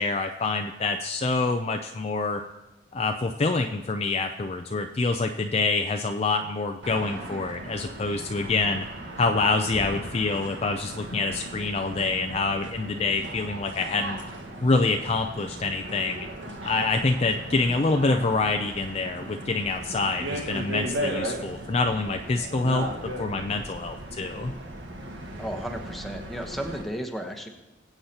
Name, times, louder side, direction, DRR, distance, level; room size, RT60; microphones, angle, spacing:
voice 1, 0.0-2.4 2.9-8.9 9.2-14.2 14.6-16.3 16.6-22.9 23.2-24.6, left 3 dB, 35° left, 5 dB, 0.4 m, -26 dB
sound 1, 6.8-26.8, right 1 dB, 80° right, 1.6 m, -37 dB
voice 2, 25.4-27.5, equal, ahead, 2 dB, 1.1 m, -34 dB
21.0 x 8.0 x 2.9 m, 1.1 s
head